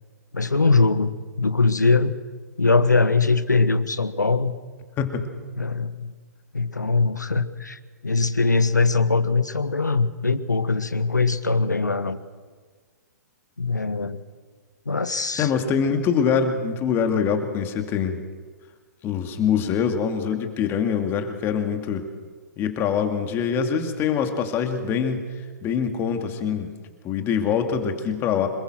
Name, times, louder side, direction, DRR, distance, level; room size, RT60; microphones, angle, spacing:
voice 1, 0.3-2.1 2.6-4.5 5.6-6.1 6.5-12.2 13.6-14.2 14.8-15.5, left 3 dB, 80° left, 14 dB, 1.3 m, -21 dB
voice 2, 15.4-18.2 19.0-22.1 22.6-25.2 25.6-26.7 27.0-28.5, left 7 dB, 25° left, 6 dB, 2.5 m, -24 dB
26.5 x 21.0 x 6.4 m, 1.5 s
figure-of-eight pair, 115°, 9 cm